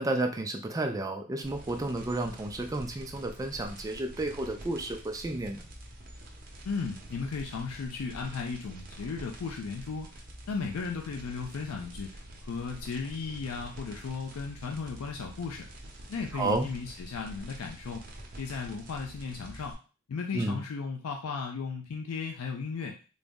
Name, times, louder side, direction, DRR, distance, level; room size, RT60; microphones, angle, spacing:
voice 1, 0.0-5.6 16.3-16.7 20.3-20.6, right 2 dB, 15° right, 5 dB, 0.3 m, -31 dB
sound 1, 1.4-19.7, right 1 dB, 40° right, 0.7 m, -47 dB
voice 2, 6.6-10.1 10.5-15.7 16.1-18.1 18.4-19.8 20.1-22.9, left 5 dB, 70° left, 2 dB, 0.4 m, -35 dB
3.9 x 2.0 x 3.5 m, 0.36 s
head